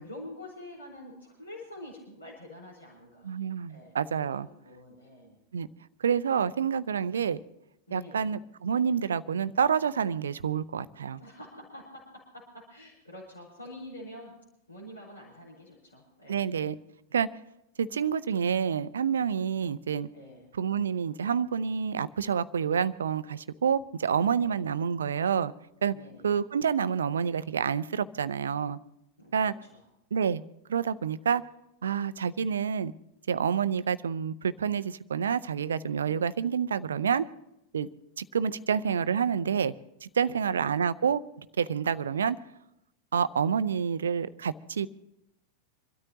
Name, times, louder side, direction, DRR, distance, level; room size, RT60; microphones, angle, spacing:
voice 1, 0.0-3.3 3.7-3.9 4.3-5.4 7.9-8.3 11.2-14.3 14.7-16.4 20.1-20.4 24.3-24.7 25.9-26.4 29.2-29.8 40.2-40.4, left 1 dB, 85° left, -7 dB, 4.8 m, -46 dB
voice 2, 3.2-4.5 5.5-5.7 6.0-7.4 7.9-11.2 16.3-16.8 17.1-17.3 17.8-20.1 20.5-25.5 25.8-25.9 26.2-28.8 29.3-29.5 30.1-30.4 30.7-31.4 31.8-32.9 33.3-37.3 37.7-37.9 38.2-39.7 40.0-42.4 43.1-44.9, right 7 dB, 70° right, 15 dB, 0.6 m, -28 dB
27.0 x 13.0 x 2.9 m, 0.86 s
figure-of-eight pair, 90°, 0 cm